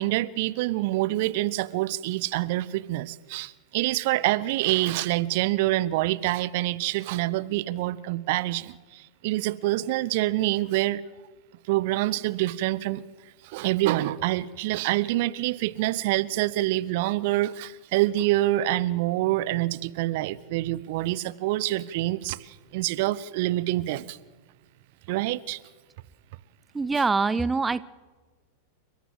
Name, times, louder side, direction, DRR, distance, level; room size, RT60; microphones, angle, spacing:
voice 1, 0.0-11.0 11.7-13.0 13.4-24.2 25.1-25.6, right 16 dB, 50° right, 0.8 m, -26 dB
voice 2, 26.7-27.8, right 4 dB, 10° right, 0.6 m, -24 dB
30.0 x 13.0 x 7.8 m
figure-of-eight pair, 90°, 0 cm